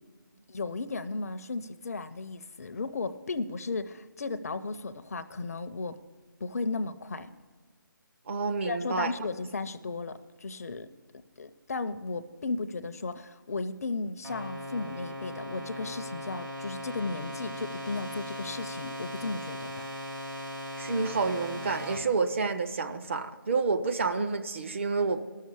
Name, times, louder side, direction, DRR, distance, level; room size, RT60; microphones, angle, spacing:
voice 1, 0.5-6.0 6.4-7.3 8.7-10.9 11.4-19.9, left 3 dB, 45° left, 11 dB, 0.5 m, -35 dB
voice 2, 8.3-9.1 20.8-25.2, right 4 dB, 35° right, 7 dB, 0.6 m, -29 dB
sound 1, 14.2-22.0, equal, 75° right, 4.9 m, -39 dB
12.5 x 6.5 x 8.4 m, 1.4 s
figure-of-eight pair, 155°, 11 cm